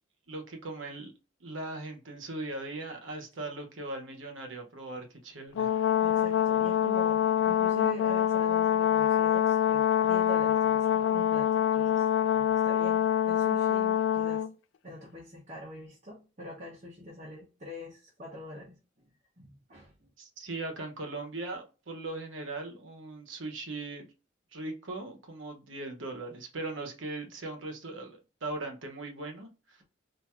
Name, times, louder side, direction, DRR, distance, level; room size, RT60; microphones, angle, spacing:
voice 1, 0.3-1.1 1.4-5.7 20.2-24.1 24.5-29.8, right 2 dB, 85° right, 1.0 m, -39 dB
Brass instrument, 5.5-14.5, left 10 dB, 75° left, 0.3 m, -25 dB
voice 2, 6.0-12.1 12.3-14.4 14.8-19.1 19.4-19.9, equal, 40° right, 1.1 m, -44 dB
4.3 x 2.7 x 2.4 m
head